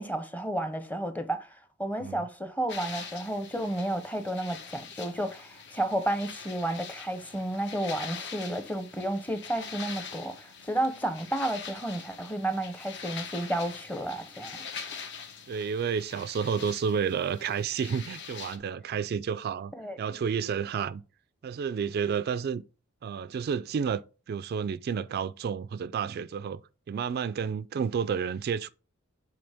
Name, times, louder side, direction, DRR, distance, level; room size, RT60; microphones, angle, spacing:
voice 1, 0.0-1.5 1.8-14.6 19.8-20.0, right 1 dB, 10° left, 0.8 m, -32 dB
sound 1, 2.7-18.6, left 6 dB, 60° left, 1.1 m, -43 dB
voice 2, 15.5-19.7 20.0-21.0 21.4-22.6 23.0-26.6 26.9-28.7, right 6 dB, 50° right, 0.3 m, -30 dB
7.7 x 4.0 x 3.4 m
head